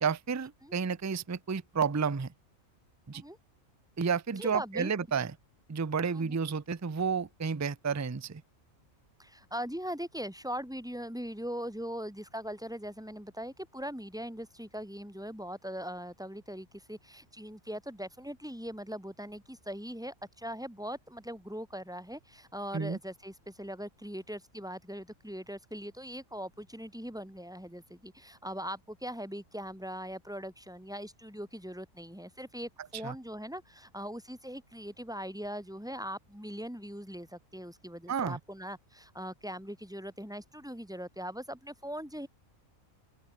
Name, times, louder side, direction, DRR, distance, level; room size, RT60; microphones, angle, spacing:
voice 1, 0.0-2.3 3.1-3.2 4.0-5.3 5.7-8.4 22.7-23.0 33.0-33.1 38.1-38.4, right 6 dB, 25° right, 0.3 m, -31 dB
voice 2, 4.4-4.9 6.1-6.4 9.2-42.3, equal, 5° right, 6.3 m, -40 dB
open air
omnidirectional pair, 1.4 m